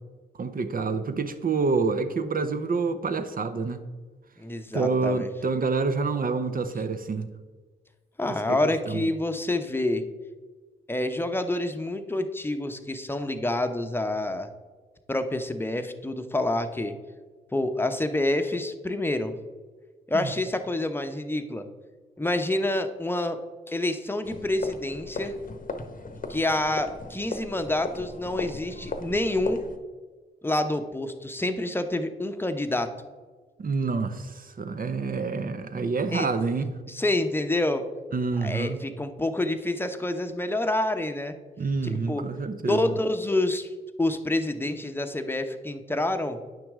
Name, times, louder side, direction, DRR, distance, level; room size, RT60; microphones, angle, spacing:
voice 1, 0.3-3.8 4.7-7.3 8.2-8.6 8.9-9.0 20.1-20.3 33.6-36.8 38.1-38.8 41.6-43.0, right 4 dB, 45° right, 10 dB, 0.8 m, -27 dB
voice 2, 4.4-5.3 8.2-10.0 10.9-14.5 15.1-16.9 17.5-19.3 20.1-21.7 22.2-23.4 23.7-25.4 26.3-29.6 30.4-32.9 36.1-36.3 36.9-37.8 38.4-41.3 41.8-42.2 42.7-43.7 44.0-46.4, left 1 dB, 10° left, 7 dB, 0.8 m, -27 dB
sound 1, 24.2-29.8, left 3 dB, 40° left, 0.9 m, -37 dB
8.9 x 5.9 x 3.7 m, 1.4 s
supercardioid pair, 45°, 20 cm